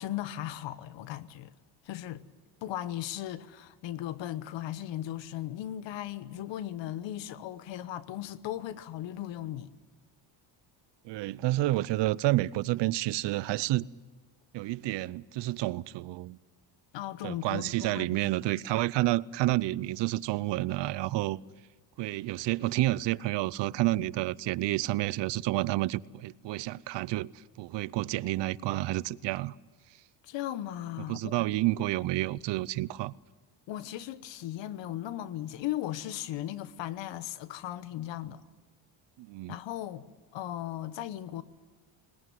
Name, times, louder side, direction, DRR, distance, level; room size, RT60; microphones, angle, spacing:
voice 1, 0.0-1.5 1.8-2.2 2.6-9.7 16.9-18.2 30.2-31.5 33.7-38.4 39.5-40.0 40.3-41.4, left 12 dB, 65° left, 1.2 m, -37 dB
voice 2, 11.0-13.9 14.5-16.4 17.2-21.4 22.0-27.3 27.6-29.5 31.1-33.1 39.2-39.5, right 17 dB, 60° right, 0.7 m, -29 dB
20.5 x 20.5 x 9.4 m
cardioid pair, 105°, 47 cm